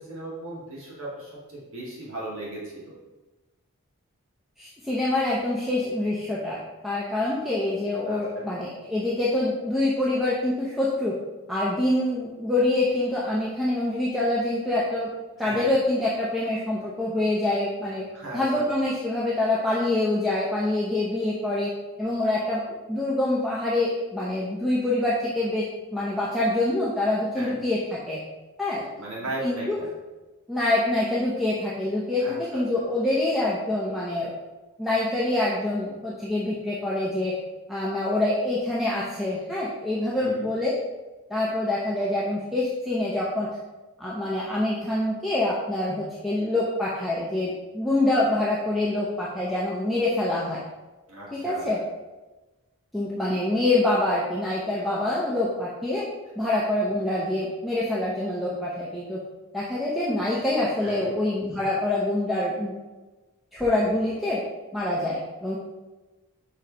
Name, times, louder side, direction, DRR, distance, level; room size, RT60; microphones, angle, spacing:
voice 1, 0.0-2.9 8.1-8.5 15.5-15.7 18.1-18.6 27.4-27.6 29.0-29.9 32.2-32.6 40.2-40.5 51.1-51.8 60.8-61.1, right 1 dB, 70° right, -6 dB, 2.1 m, -37 dB
voice 2, 4.6-6.6 6.8-11.2 11.5-15.1 15.4-18.0 18.3-21.7 22.0-28.2 28.6-28.9 29.4-29.8 30.5-34.3 34.8-37.4 37.7-40.7 41.3-43.6 44.0-50.6 51.3-51.8 52.9-56.1 56.4-59.2 59.5-62.7 63.5-64.4 64.7-65.6, left 2 dB, ahead, -6 dB, 0.7 m, -25 dB
5.6 x 4.7 x 5.2 m, 1.2 s
head